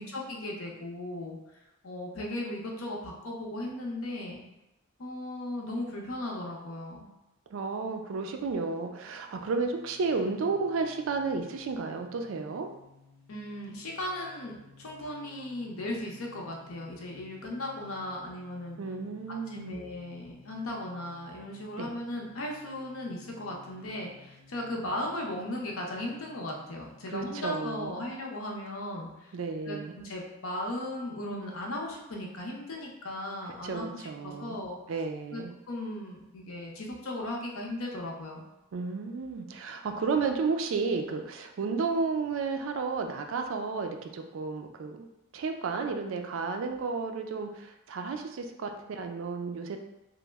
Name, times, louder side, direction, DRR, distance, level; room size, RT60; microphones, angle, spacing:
voice 1, 0.0-1.4 1.8-4.4 5.0-7.1 13.3-18.8 19.5-29.3 29.7-29.8 30.0-34.8 35.3-38.5, left 1 dB, 85° left, -1 dB, 0.7 m, -37 dB
voice 2, 7.5-12.7 18.8-19.8 21.8-21.9 27.1-28.0 29.3-29.9 33.6-34.6 34.9-35.5 38.7-45.1 45.3-49.8, right 4 dB, 70° right, 5 dB, 0.4 m, -32 dB
sound 1, 9.2-27.5, left 3 dB, 45° right, 1.4 m, -57 dB
3.0 x 2.0 x 3.4 m, 0.96 s
head